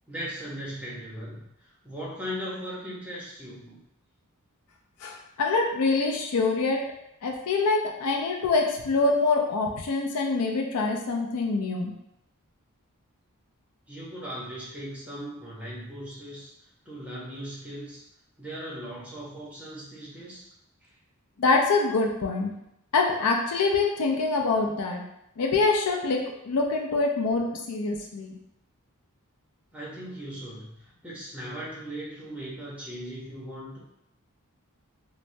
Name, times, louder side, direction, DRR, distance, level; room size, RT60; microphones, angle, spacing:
voice 1, 0.1-3.8 13.9-16.5 16.9-18.0 18.4-20.5 20.8-20.9 29.7-33.8, equal, 5° right, -7 dB, 0.7 m, -38 dB
voice 2, 5.0-6.8 7.2-11.9 21.4-22.5 22.9-25.0 25.4-28.3, left 3 dB, 80° left, 1 dB, 0.4 m, -25 dB
3.2 x 2.0 x 2.6 m, 0.81 s
head